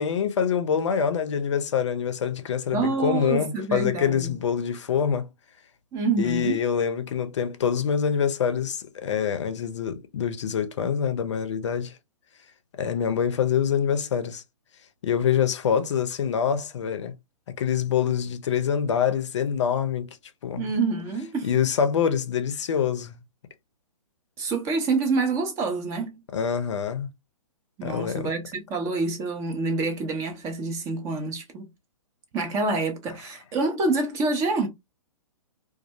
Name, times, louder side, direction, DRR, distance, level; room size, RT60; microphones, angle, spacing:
voice 1, 0.0-5.3 6.2-11.9 12.8-14.4 15.0-17.1 17.6-20.1 20.4-20.6 21.4-23.1 26.3-27.1 27.8-28.3, left 7 dB, 55° left, 0.5 m, -25 dB
voice 2, 2.7-4.3 5.9-6.6 20.6-21.5 24.4-26.2 27.8-31.7 32.3-34.7, right 3 dB, 15° right, 0.4 m, -27 dB
2.3 x 2.0 x 2.7 m
figure-of-eight pair, 125°, 18 cm